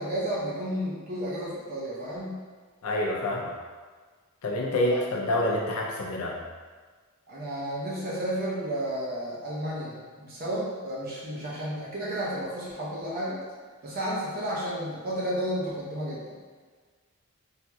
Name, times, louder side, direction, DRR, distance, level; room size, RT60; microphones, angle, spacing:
voice 1, 0.0-2.4 4.7-5.0 7.3-13.4 13.8-16.3, right 1 dB, 40° right, -6 dB, 0.8 m, -32 dB
voice 2, 2.8-3.5 4.4-6.4, left 1 dB, 75° left, -2 dB, 0.5 m, -27 dB
3.2 x 2.7 x 2.3 m, 1.5 s
head